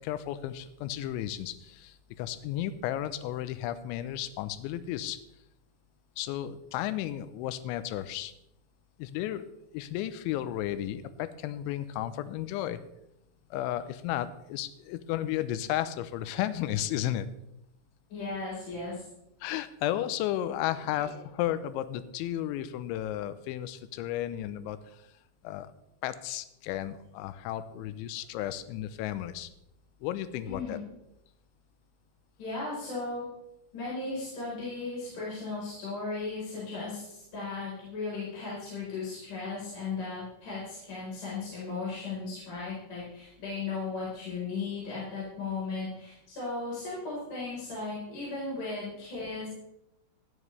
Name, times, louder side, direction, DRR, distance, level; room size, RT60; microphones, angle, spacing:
voice 1, 0.0-5.2 6.2-8.3 9.0-9.5 9.7-12.8 13.5-17.3 19.4-24.8 25.4-25.7 26.0-29.5 30.0-30.8, left 12 dB, 80° left, 12 dB, 2.9 m, -33 dB
voice 2, 18.1-19.0 20.9-21.2 30.5-30.8 32.4-33.3 33.7-49.5, left 3 dB, 45° left, -7 dB, 5.5 m, -36 dB
14.5 x 13.0 x 3.3 m, 0.84 s
omnidirectional pair, 5.7 m